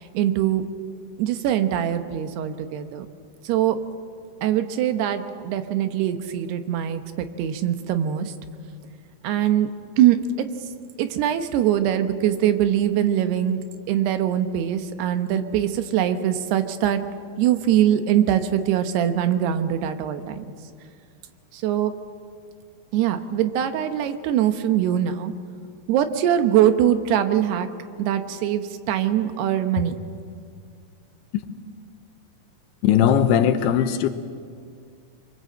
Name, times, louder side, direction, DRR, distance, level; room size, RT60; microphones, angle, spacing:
voice 1, 0.1-0.6 1.2-3.1 3.4-3.8 4.4-8.3 9.2-9.7 10.0-10.5 11.0-13.6 13.9-17.0 17.4-20.4 21.5-21.9 22.9-25.3 25.9-27.7 28.0-29.9, right 10 dB, 80° right, 9 dB, 3.1 m, -22 dB
voice 2, 32.8-34.1, left 9 dB, 80° left, 9 dB, 3.0 m, -19 dB
24.5 x 23.0 x 7.7 m, 2.2 s
omnidirectional pair, 4.8 m